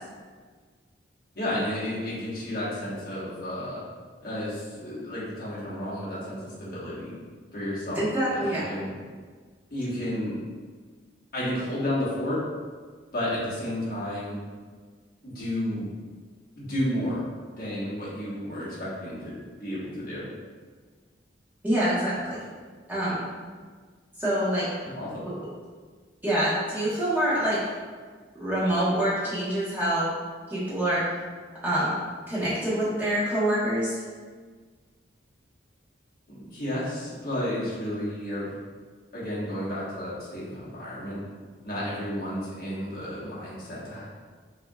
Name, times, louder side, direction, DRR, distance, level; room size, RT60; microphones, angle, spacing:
voice 1, 1.3-3.8 4.2-7.1 7.5-8.0 8.3-8.9 9.7-10.4 11.3-12.4 13.1-14.4 15.2-15.9 16.6-20.3 25.0-25.3 36.3-38.5 39.1-41.2 41.6-44.0, left 1 dB, 50° left, -8 dB, 1.4 m, -32 dB
voice 2, 7.9-8.7 21.6-22.4 22.9-23.2 24.2-24.7 26.2-27.6 28.3-30.1 30.5-31.0 31.6-31.9 32.3-34.0, right 1 dB, 10° right, -10 dB, 1.2 m, -26 dB
5.5 x 2.9 x 2.4 m, 1.5 s
head